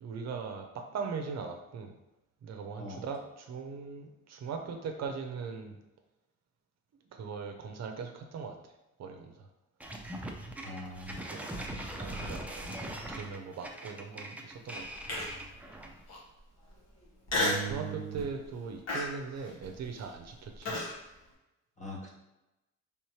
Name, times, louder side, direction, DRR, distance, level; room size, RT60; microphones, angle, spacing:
voice 1, 0.0-1.9 2.4-5.8 7.1-8.6 9.0-9.5 11.1-11.6 12.0-12.4 13.1-15.2 17.7-20.8, right 5 dB, 60° right, 4 dB, 0.7 m, -40 dB
sound 1, 9.8-16.1, right 1 dB, 5° right, 0.5 m, -41 dB
voice 2, 10.6-11.2 17.3-18.2 21.8-22.1, right 4 dB, 25° left, -1 dB, 1.2 m, -39 dB
Human voice, 15.1-15.5 16.1-16.2 17.3-17.7 18.2-18.5 18.9-20.9, left 2 dB, 60° left, 1.5 m, -32 dB
4.3 x 3.6 x 3.1 m, 0.95 s
cardioid pair, 90°, 30 cm